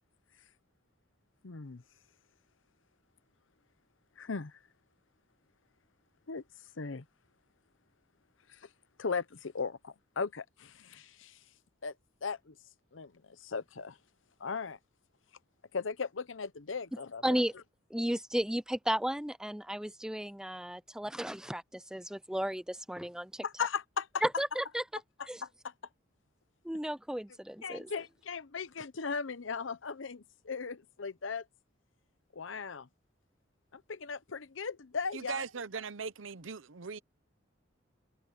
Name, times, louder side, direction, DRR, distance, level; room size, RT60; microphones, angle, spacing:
voice 1, 1.4-1.8 4.2-4.6 6.3-6.4 6.8-7.0 8.5-8.7 9.0-11.4 11.8-11.9 12.2-12.6 12.9-14.0 14.4-14.8 15.7-17.4 23.4-24.2 25.4-25.7 27.6-31.4 32.3-32.9 33.7-35.4, left 5 dB, 75° left, 0.8 m, -37 dB
voice 2, 17.2-17.5 17.9-23.4 24.2-24.8 25.3-25.4 26.6-27.9, equal, 5° right, 0.5 m, -34 dB
voice 3, 35.1-37.0, right 5 dB, 80° right, 0.8 m, -39 dB
head